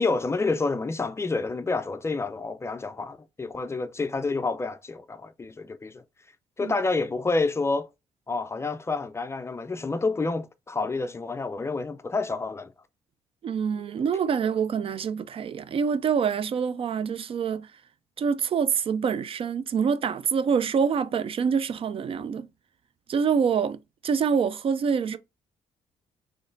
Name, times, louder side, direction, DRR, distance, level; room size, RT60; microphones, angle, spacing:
voice 1, 0.0-6.0 6.6-7.9 8.3-12.7, left 3 dB, 20° left, 0.4 m, -28 dB
voice 2, 13.4-17.7 18.2-22.5 23.1-25.2, right 6 dB, 45° right, 0.3 m, -26 dB
4.0 x 3.0 x 2.6 m
cardioid pair, 95°, 13 cm